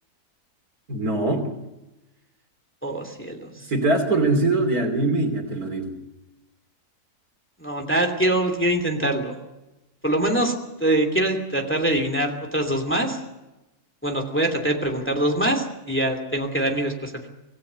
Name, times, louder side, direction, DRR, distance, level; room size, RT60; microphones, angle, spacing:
voice 1, 0.9-1.5 3.5-5.9, right 2 dB, 65° right, 6 dB, 3.4 m, -22 dB
voice 2, 2.8-3.7 7.6-9.4 10.0-10.5 10.8-13.2 14.0-17.3, right 1 dB, 5° left, 5 dB, 2.8 m, -24 dB
25.5 x 17.0 x 8.2 m, 1.0 s
omnidirectional pair, 1.7 m